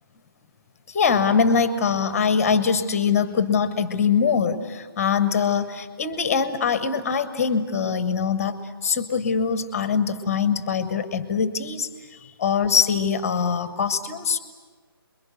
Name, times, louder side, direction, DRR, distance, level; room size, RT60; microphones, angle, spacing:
voice 1, 0.9-14.4, left 6 dB, 15° left, 12 dB, 0.9 m, -23 dB
29.0 x 22.0 x 7.9 m, 1.5 s
figure-of-eight pair, 145°, 13 cm